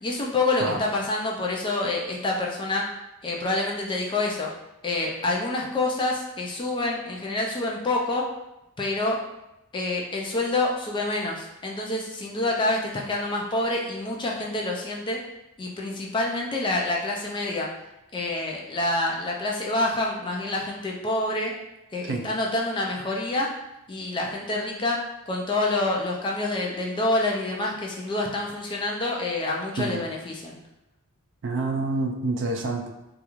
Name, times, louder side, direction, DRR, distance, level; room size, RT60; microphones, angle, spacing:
voice 1, 0.0-2.8 3.2-4.5 4.8-8.2 8.8-9.2 9.7-15.2 15.6-17.7 18.1-21.5 21.9-23.5 23.9-25.0 25.3-30.6, left 2 dB, 20° left, -1 dB, 0.3 m, -27 dB
voice 2, 31.4-32.9, right 3 dB, 55° right, 2 dB, 0.4 m, -27 dB
2.3 x 2.3 x 2.9 m, 0.92 s
head